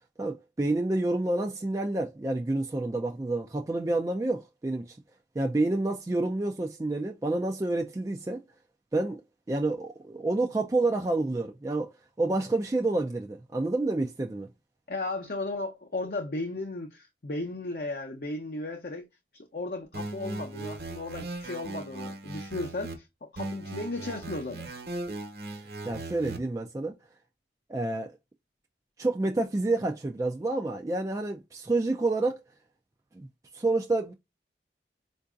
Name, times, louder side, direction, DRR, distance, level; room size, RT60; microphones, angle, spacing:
voice 1, 0.2-5.0 5.4-8.4 8.9-9.2 9.5-11.9 12.2-14.5 25.9-27.0 27.7-28.1 29.0-32.4 33.2-33.3 33.5-34.1, right 2 dB, 20° right, 0.3 m, -28 dB
voice 2, 14.9-19.1 19.3-24.7, left 2 dB, 55° left, 0.6 m, -35 dB
sound 1, 19.9-23.0 23.4-26.4, right 2 dB, 65° right, 1.1 m, -38 dB
4.7 x 2.6 x 2.3 m
head